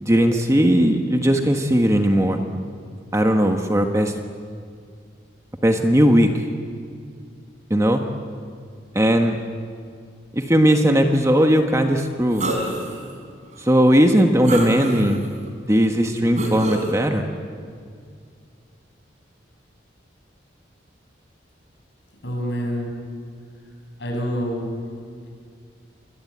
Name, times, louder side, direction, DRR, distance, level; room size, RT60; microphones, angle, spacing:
voice 1, 0.0-2.4 3.1-4.1 5.6-6.3 7.7-8.0 8.9-9.4 10.3-12.5 13.6-15.2 15.7-17.3, equal, 15° right, 4 dB, 1.3 m, -18 dB
sound 1, 12.4-13.0 13.5-13.6 14.4-15.3 16.4-16.9, right 1 dB, 40° right, 4.7 m, -26 dB
voice 2, 22.2-22.9 24.0-24.7, equal, 65° left, 0 dB, 7.6 m, -27 dB
28.0 x 22.0 x 8.7 m, 2.2 s
head